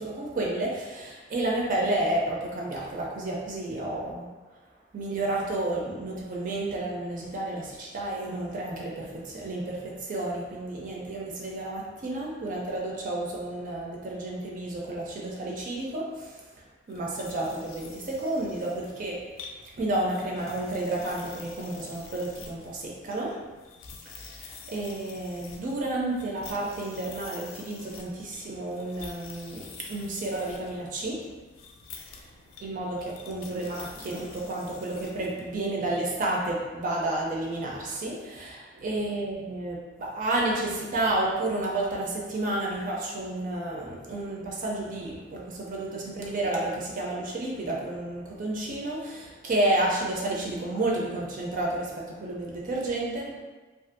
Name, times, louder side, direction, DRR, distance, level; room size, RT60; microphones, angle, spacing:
voice 1, 0.0-4.3 4.9-16.4 16.9-19.3 19.8-23.5 24.1-31.3 32.0-32.2 32.6-53.4, right 2 dB, 45° right, -3 dB, 0.4 m, -31 dB
sound 1, 16.9-35.7, left 5 dB, 75° left, 0.3 m, -48 dB
2.5 x 2.4 x 2.5 m, 1.3 s
head